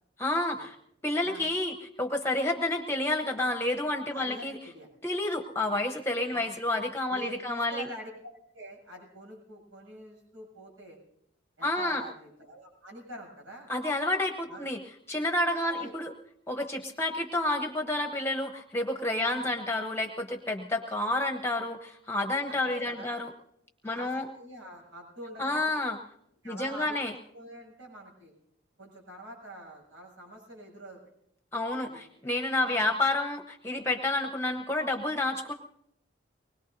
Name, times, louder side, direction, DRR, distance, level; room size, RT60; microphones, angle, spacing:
voice 1, 0.2-0.7 1.0-4.6 5.0-7.9 11.6-12.0 13.7-14.8 15.1-16.1 16.5-23.3 23.8-24.2 25.4-26.0 26.4-27.1 31.5-35.5, left 2 dB, 15° left, 3 dB, 0.9 m, -29 dB
voice 2, 4.1-4.9 6.3-6.5 7.1-11.0 11.6-13.7 14.5-14.7 15.5-15.9 19.2-19.5 22.5-23.2 23.8-25.8 26.4-27.0 27.3-28.3 28.8-31.0 31.8-32.0 32.6-32.8, right 1 dB, 85° right, -1 dB, 7.8 m, -46 dB
24.5 x 21.0 x 2.7 m, 0.76 s
head